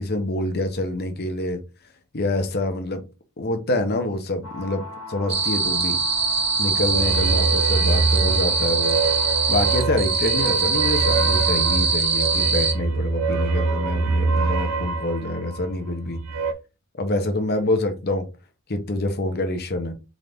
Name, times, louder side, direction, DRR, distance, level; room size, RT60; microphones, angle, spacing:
voice 1, 0.0-1.6 2.1-3.0 3.4-4.8 5.1-6.0 6.6-9.0 9.5-16.2 17.0-18.3 18.7-19.9, left 2 dB, 50° left, 0.9 m, -26 dB
sound 1, 4.4-9.9, left 2 dB, 80° left, 1.6 m, -38 dB
sound 2, 5.3-12.7, right 4 dB, 30° right, 1.0 m, -22 dB
sound 3, 6.8-16.5, right 3 dB, 85° right, 0.7 m, -24 dB
3.9 x 3.7 x 3.5 m
head